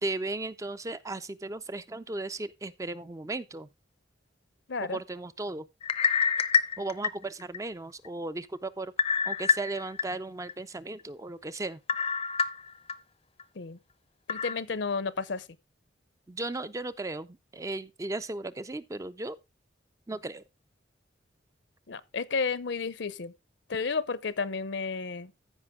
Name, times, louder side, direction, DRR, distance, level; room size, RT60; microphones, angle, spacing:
voice 1, 0.0-3.7 4.8-5.7 6.8-8.9 9.3-11.8 16.3-19.4 20.1-20.4, right 2 dB, 15° right, 0.4 m, -36 dB
voice 2, 4.7-5.0 13.6-13.8 14.3-15.4 21.9-23.3 23.7-25.3, left 4 dB, 70° left, 0.7 m, -32 dB
sound 1, 5.8-7.6 8.0-8.1 9.0-10.0 10.5-10.6 11.9-12.9 13.4-13.5 14.3-14.5, left 6 dB, 30° left, 0.5 m, -27 dB
14.5 x 5.1 x 3.6 m
head